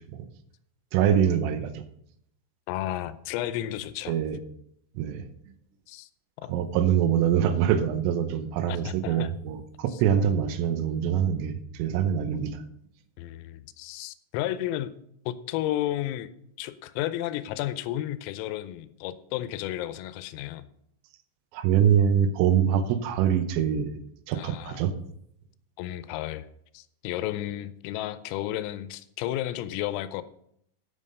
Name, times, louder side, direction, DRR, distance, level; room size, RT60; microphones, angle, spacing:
voice 1, 0.9-1.9 4.1-4.4 5.0-5.3 6.5-12.6 21.5-23.9 24.3-24.9, right 9 dB, 80° right, 10 dB, 3.3 m, -24 dB
voice 2, 2.7-4.2 5.9-6.1 6.4-6.5 8.7-9.3 13.2-14.9 15.3-16.3 16.6-20.7 24.4-24.8 25.8-26.5 26.8-30.2, left 13 dB, 85° left, 13 dB, 3.3 m, -32 dB
10.0 x 7.6 x 5.4 m, 0.72 s
omnidirectional pair, 6.0 m